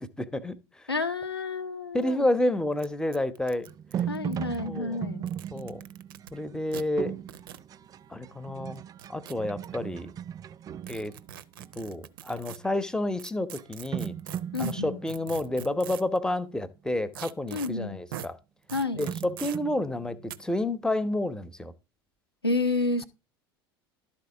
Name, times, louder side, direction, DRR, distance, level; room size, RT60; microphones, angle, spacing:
voice 1, 0.2-0.5 1.9-3.7 4.6-5.0 5.5-5.8 6.3-7.1 8.1-8.8 9.1-10.1 10.9-11.1 11.8-14.1 14.6-18.4 18.9-21.7, left 1 dB, 5° left, 1.0 m, -30 dB
voice 2, 0.9-2.3 4.1-5.2 14.5-15.0 17.5-18.0 18.7-19.1 22.4-23.0, left 3 dB, 85° left, 1.1 m, -30 dB
sound 1, 2.0-2.1 2.3-2.4 2.8-2.9 3.1-4.6 5.2-6.3 6.7-6.8 7.3-7.6 8.7-9.7 10.8-12.6 13.2-16.2 17.1-17.7 18.1-18.3 18.7-19.6 20.3-20.4, right 10 dB, 65° right, 0.7 m, -42 dB
sound 2, 3.7-11.9 12.4-12.8 13.6-13.7 13.9-16.4 19.1-20.9, right 9 dB, 30° right, 0.4 m, -38 dB
12.0 x 4.3 x 6.9 m
figure-of-eight pair, 70°, 13 cm